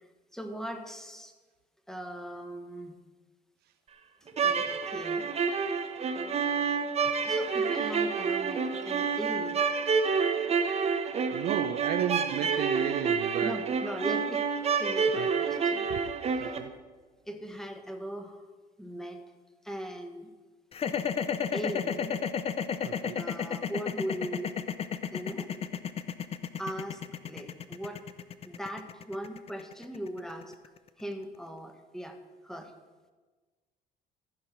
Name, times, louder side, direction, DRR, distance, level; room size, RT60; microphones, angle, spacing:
voice 1, 0.3-1.3 1.9-3.0 4.4-5.3 7.2-9.6 13.4-14.5 14.8-15.8 17.2-18.4 18.8-19.2 19.6-20.3 21.5-22.2 23.2-24.5 25.1-25.5 26.6-27.0 27.3-28.0 28.4-30.5 31.0-32.2 32.4-32.7, right 1 dB, 5° left, 5 dB, 1.3 m, -39 dB
sound 1, 4.3-16.6, right 5 dB, 40° right, 1.0 m, -28 dB
voice 2, 11.3-13.6 15.1-15.3 15.9-16.0 16.4-16.8 22.8-23.3, right 10 dB, 70° right, 8 dB, 0.6 m, -34 dB
sound 2, 20.7-30.9, left 7 dB, 35° left, 0.6 m, -32 dB
14.5 x 4.9 x 5.9 m, 1.3 s
cardioid pair, 110°, 17 cm